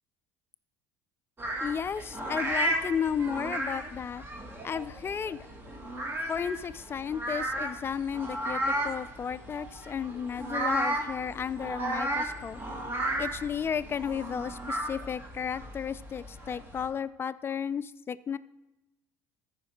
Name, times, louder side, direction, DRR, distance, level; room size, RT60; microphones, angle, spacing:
sound 1, 1.4-16.9, right 1 dB, 30° right, 1.7 m, -34 dB
voice 1, 1.6-4.2 4.6-5.5 6.3-12.6 13.2-18.4, left 7 dB, 30° left, 17 dB, 0.4 m, -33 dB
14.0 x 5.1 x 4.6 m, 0.97 s
hypercardioid pair, 75°, 8 cm